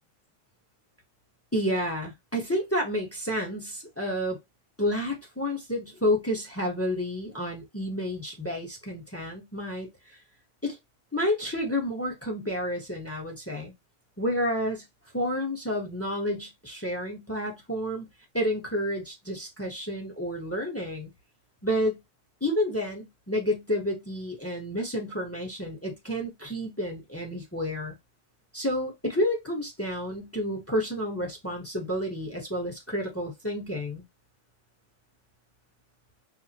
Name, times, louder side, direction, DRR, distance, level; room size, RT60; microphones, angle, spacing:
voice 1, 1.5-4.4 4.8-9.9 10.6-10.8 11.1-13.7 14.2-14.8 15.1-18.1 18.3-21.1 21.6-22.0 22.4-28.0 28.5-34.0, equal, 15° left, 0.5 m, -30 dB
5.5 x 2.2 x 2.8 m
omnidirectional pair, 2.4 m